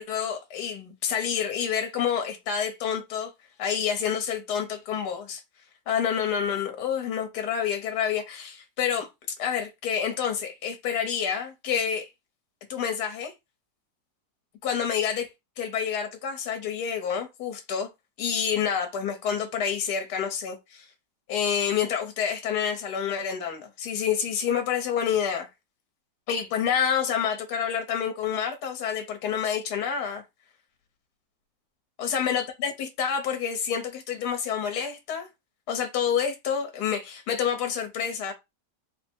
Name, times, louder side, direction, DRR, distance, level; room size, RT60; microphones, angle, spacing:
voice 1, 0.0-3.3 3.6-5.4 5.9-9.1 9.4-12.1 12.7-13.3 14.6-15.3 15.6-17.9 18.2-20.9 21.3-25.5 26.3-30.2 32.0-35.3 35.7-38.3, left 8 dB, 65° left, 1.4 m, -28 dB
4.0 x 2.1 x 4.3 m
omnidirectional pair, 2.0 m